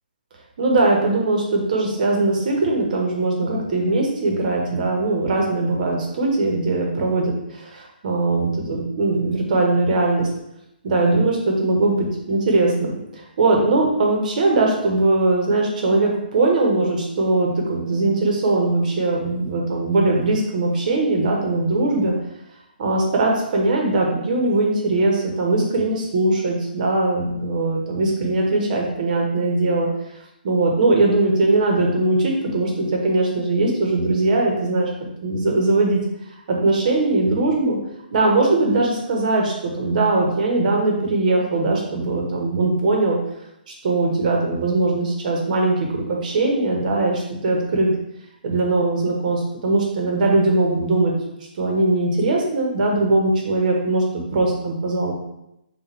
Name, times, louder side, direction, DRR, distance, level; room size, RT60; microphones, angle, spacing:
voice 1, 0.6-10.3 10.8-22.1 22.8-29.9 30.4-34.9 35.2-36.0 36.5-37.8 38.1-43.2 43.7-47.9 48.4-51.1 51.6-55.1, right 2 dB, 50° right, 0 dB, 1.2 m, -20 dB
5.6 x 2.6 x 3.5 m, 0.84 s
figure-of-eight pair, 135°, 5 cm